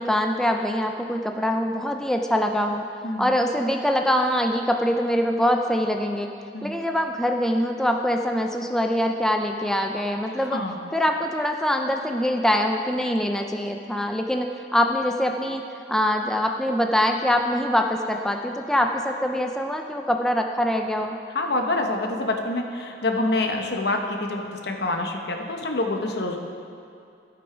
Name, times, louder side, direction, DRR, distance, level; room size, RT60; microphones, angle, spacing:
voice 1, 0.0-2.9 3.2-6.3 6.6-10.6 10.9-15.6 15.9-21.2, equal, 5° left, 3 dB, 0.4 m, -24 dB
voice 2, 10.4-10.8 21.3-26.4, left 2 dB, 65° left, 3 dB, 1.0 m, -26 dB
14.5 x 6.1 x 5.0 m, 2.5 s
head